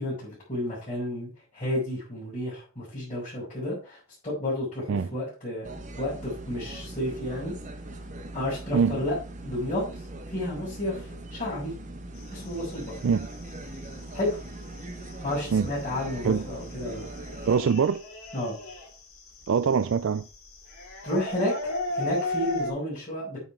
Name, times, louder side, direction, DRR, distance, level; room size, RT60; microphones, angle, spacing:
voice 1, 0.0-7.5 8.3-9.2 9.4-11.7 12.3-13.0 14.1-14.4 15.2-17.1 18.3-18.6 21.0-21.5 21.9-23.4, left 1 dB, 30° left, 5.1 m, -31 dB
sound 1, 5.6-17.6, right 1 dB, 35° right, 1.2 m, -40 dB
sound 2, 12.2-22.7, left 2 dB, 70° left, 4.3 m, -36 dB
voice 2, 17.5-18.0 19.5-20.3, right 6 dB, 55° right, 0.4 m, -23 dB
9.0 x 5.9 x 4.6 m
head